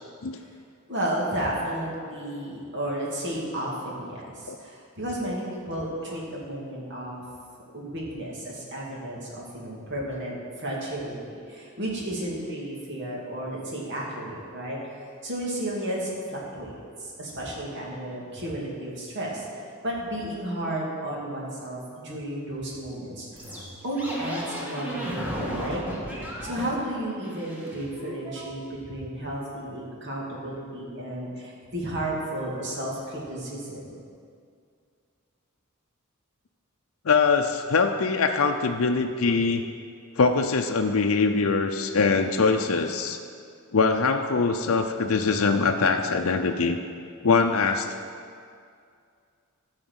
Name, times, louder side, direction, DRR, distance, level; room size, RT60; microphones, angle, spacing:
voice 1, 0.9-7.2 7.7-14.8 15.2-16.7 17.0-19.4 19.8-23.5 23.8-25.8 26.4-34.0, right 1 dB, 55° right, -4 dB, 2.5 m, -33 dB
sound 1, 23.4-26.8 27.2-28.4, right 1 dB, 10° right, 1.7 m, -34 dB
voice 2, 37.0-39.6 40.2-43.2 43.7-46.8 47.2-47.9, left 4 dB, 70° left, 4 dB, 0.6 m, -23 dB
13.0 x 4.9 x 8.0 m, 2.3 s
head